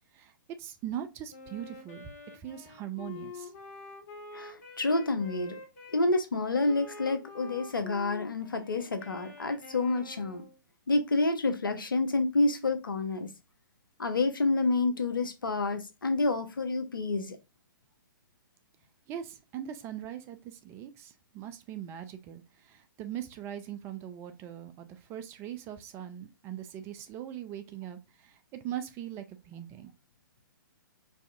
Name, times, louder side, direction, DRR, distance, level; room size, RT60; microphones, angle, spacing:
voice 1, 0.6-3.5 19.1-29.9, right 10 dB, 20° right, 0.4 m, -41 dB
Wind instrument woodwind instrument, 1.3-6.0 6.6-10.6, left 4 dB, 45° left, 1.2 m, -47 dB
voice 2, 4.3-5.6 5.9-10.4 10.9-13.3 14.0-17.4, left 2 dB, 75° left, 0.8 m, -28 dB
4.6 x 2.6 x 2.5 m
figure-of-eight pair, 120°, 11 cm